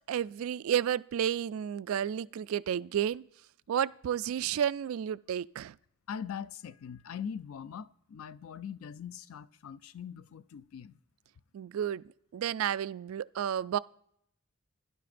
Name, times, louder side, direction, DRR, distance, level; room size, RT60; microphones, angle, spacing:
voice 1, 0.1-3.2 3.7-5.8 11.5-12.0 12.3-13.8, right 9 dB, 75° right, 0.3 m, -31 dB
voice 2, 6.1-11.0, left 7 dB, 85° left, 0.4 m, -42 dB
17.5 x 10.5 x 2.5 m
head